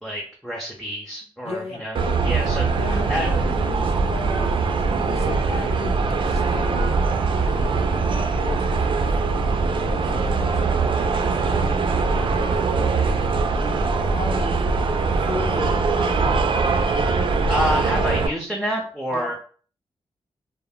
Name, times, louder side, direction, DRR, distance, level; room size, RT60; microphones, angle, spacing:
voice 1, 0.0-2.0 2.2-2.8 3.1-3.3 17.5-19.3, equal, ahead, -2 dB, 0.6 m, -28 dB
voice 2, 1.4-1.9 2.7-4.5 4.8-7.0 7.4-8.8 9.2-9.6 9.8-11.6 11.9-13.1 13.6-14.6 15.2-16.6 19.1-19.3, left 4 dB, 85° left, 1 dB, 0.5 m, -36 dB
sound 1, 1.9-18.3, right 4 dB, 55° right, 0.3 m, -22 dB
2.1 x 2.0 x 3.5 m, 0.42 s
cardioid pair, 80°, 10 cm